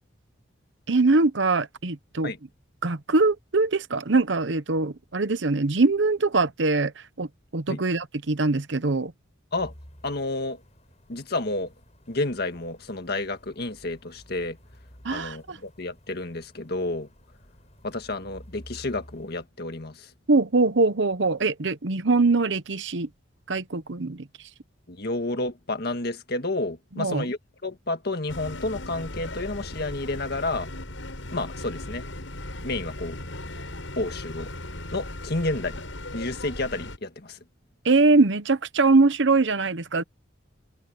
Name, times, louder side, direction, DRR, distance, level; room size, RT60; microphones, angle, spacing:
voice 1, 0.9-2.3 2.8-7.3 7.5-9.1 15.0-15.6 20.3-23.1 23.5-24.3 27.0-27.3 37.8-40.0, right 3 dB, 65° right, 0.9 m, -22 dB
sound 1, 9.5-19.4, equal, 35° left, 6.8 m, -52 dB
voice 2, 10.0-10.6 11.1-11.7 12.1-14.6 15.1-17.1 17.8-20.1 24.9-30.7 31.3-32.1 32.6-33.2 34.0-34.5 34.9-35.8 36.1-37.4, left 2 dB, 55° left, 1.8 m, -30 dB
sound 2, 28.3-37.0, left 1 dB, 80° left, 7.3 m, -37 dB
head